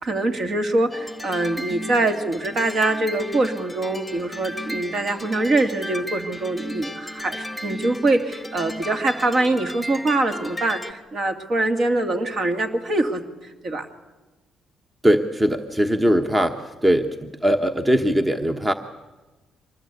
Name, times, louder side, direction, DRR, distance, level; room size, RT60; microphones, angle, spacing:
voice 1, 0.0-13.9, right 2 dB, 50° right, 7 dB, 2.3 m, -24 dB
sound 1, 0.9-10.9, equal, ahead, 1.4 m, -35 dB
voice 2, 15.0-18.7, equal, 15° right, 7 dB, 1.2 m, -20 dB
25.0 x 20.0 x 8.3 m, 1.2 s
cardioid pair, 90°, 0 cm